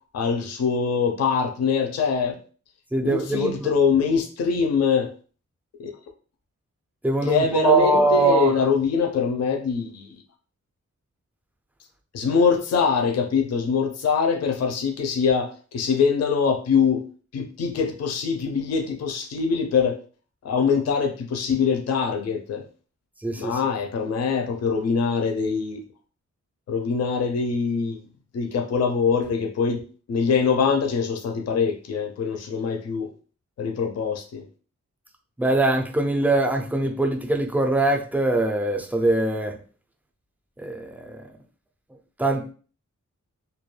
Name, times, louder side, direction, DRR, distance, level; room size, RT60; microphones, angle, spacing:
voice 1, 0.1-2.4 3.0-5.1 5.8-5.9 7.2-10.2 12.1-17.0 17.3-20.0 20.4-22.6 23.4-25.8 26.7-28.0 28.3-29.8 30.1-33.1 33.6-34.4, left 6 dB, 60° left, 0.4 m, -23 dB
voice 2, 2.9-3.7 7.0-8.5 23.2-23.6 35.4-39.6 40.6-41.2 42.2-42.5, right 2 dB, 5° right, 0.3 m, -22 dB
2.3 x 2.2 x 3.1 m
wide cardioid pair, 155°, 30 cm